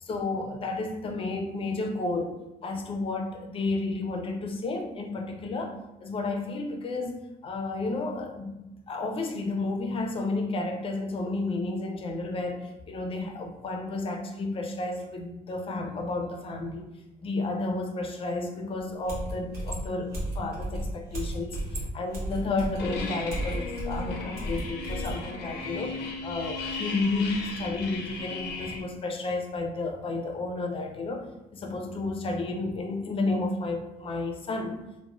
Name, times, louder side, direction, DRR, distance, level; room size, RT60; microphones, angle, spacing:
voice 1, 0.0-2.4 2.6-5.8 6.0-8.6 8.9-16.9 17.2-34.8, left 2 dB, 35° left, 3 dB, 0.4 m, -32 dB
sound 1, 19.1-25.2, right 1 dB, 65° right, 1.1 m, -34 dB
sound 2, 22.8-28.8, left 3 dB, 90° left, 0.5 m, -36 dB
3.0 x 2.1 x 2.4 m, 0.91 s
cardioid pair, 110°, 17 cm